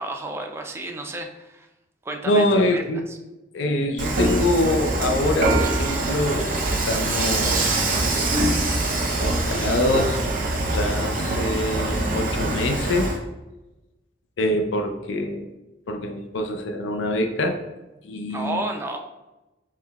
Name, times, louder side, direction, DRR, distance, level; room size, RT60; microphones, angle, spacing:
voice 1, 0.0-1.7 2.0-3.2 18.3-19.0, right 2 dB, 15° right, 3 dB, 0.4 m, -32 dB
voice 2, 2.2-3.0 3.5-6.6 6.9-8.4 9.2-10.2 10.7-13.1 14.4-15.5 15.9-17.6 18.0-18.6, left 1 dB, 75° left, 4 dB, 0.4 m, -25 dB
Dishes pots and pans / Frying (food), 4.0-13.2, right 2 dB, 45° right, 0.8 m, -23 dB
5.5 x 3.1 x 2.3 m, 1.0 s
head